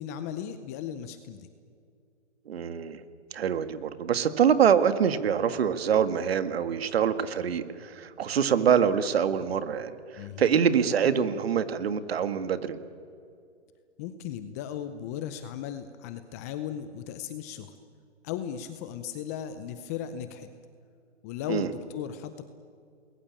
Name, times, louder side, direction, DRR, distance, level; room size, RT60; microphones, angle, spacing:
voice 1, 0.0-1.5 10.2-10.5 14.0-17.8 18.2-20.5 21.2-22.4, left 9 dB, 15° left, 11 dB, 0.5 m, -36 dB
voice 2, 2.5-3.0 3.3-12.8 21.5-21.7, right 7 dB, 55° right, 11 dB, 2.0 m, -25 dB
28.5 x 21.5 x 8.7 m, 2.4 s
hypercardioid pair, 145°, 36 cm